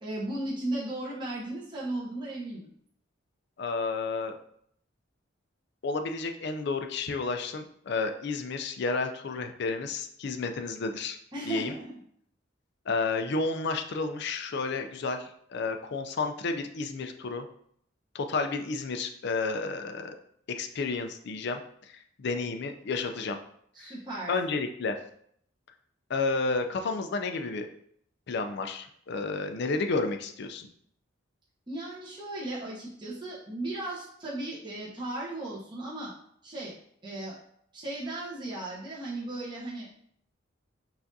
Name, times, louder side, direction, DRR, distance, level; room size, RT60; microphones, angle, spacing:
voice 1, 0.0-2.7 11.3-11.8 23.7-24.3 31.7-36.1 36.4-36.7 37.0-37.4 37.7-39.9, right 1 dB, 25° right, -6 dB, 0.8 m, -36 dB
voice 2, 3.6-4.4 5.8-11.2 11.4-11.7 12.9-17.5 18.1-20.2 20.6-21.6 21.9-23.4 23.8-23.9 24.3-24.9 26.1-27.7 28.3-30.7, left 3 dB, 55° left, 7 dB, 0.4 m, -31 dB
5.7 x 2.5 x 2.6 m, 0.67 s
head